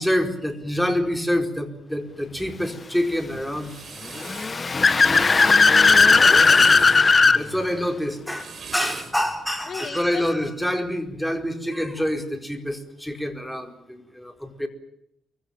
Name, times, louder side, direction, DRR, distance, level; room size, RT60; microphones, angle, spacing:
voice 1, 0.0-3.7 5.2-5.6 7.3-14.7, equal, ahead, 6 dB, 4.6 m, -27 dB
sound 1, 3.3-4.6 6.0-7.1 8.1-9.2, right 6 dB, 50° right, 6.3 m, -40 dB
Car / Accelerating revving vroom, 4.2-7.4, left 4 dB, 30° left, 1.6 m, -16 dB
voice 2, 5.4-6.6 9.7-10.2, left 6 dB, 55° left, 9 dB, 2.6 m, -33 dB
29.5 x 24.0 x 7.3 m, 0.75 s
cardioid pair, 90°, 0 cm